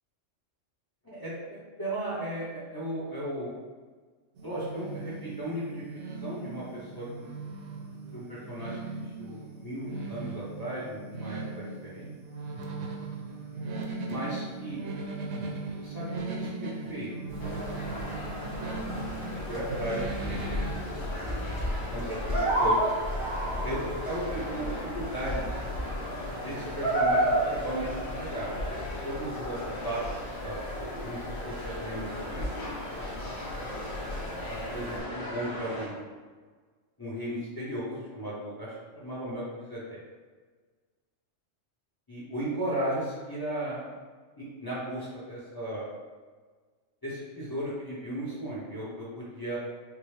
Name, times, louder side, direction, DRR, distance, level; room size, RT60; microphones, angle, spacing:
voice 1, 1.0-3.5 4.4-5.8 6.2-7.3 8.1-8.8 9.2-12.1 14.1-14.8 15.4-17.6 17.9-18.2 19.0-20.7 21.9-22.8 23.6-25.4 26.4-28.5 29.0-29.6 29.8-30.0 30.4-32.6 34.5-36.1 37.0-40.0 42.1-44.0 44.4-45.9 47.0-49.6, right 1 dB, 20° left, -8 dB, 0.8 m, -36 dB
sound 1, 4.4-20.8, right 3 dB, 75° right, 0.9 m, -38 dB
sound 2, 17.3-35.0, right 1 dB, 5° right, 1.1 m, -33 dB
sound 3, 17.4-35.9, left 1 dB, 50° left, 1.4 m, -38 dB
4.6 x 2.1 x 3.2 m, 1.5 s
omnidirectional pair, 1.2 m